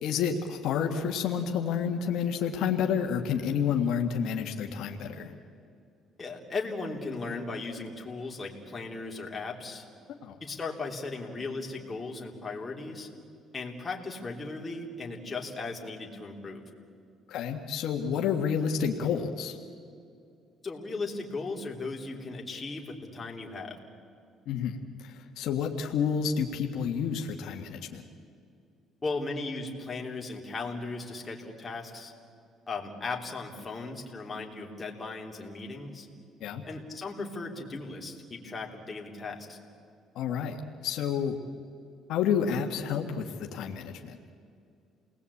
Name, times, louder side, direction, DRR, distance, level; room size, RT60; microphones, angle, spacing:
voice 1, 0.0-5.3 10.2-10.4 17.3-19.6 24.5-28.0 36.4-36.6 40.1-40.6 40.8-41.4 42.1-44.2, left 7 dB, 75° left, 3 dB, 1.7 m, -29 dB
voice 2, 6.2-9.9 10.4-13.1 13.5-16.6 20.6-23.8 29.0-32.1 32.7-36.1 36.7-39.6, left 3 dB, 25° left, 0 dB, 3.5 m, -37 dB
29.0 x 20.0 x 8.6 m, 2.4 s
cardioid pair, 120°, 0 cm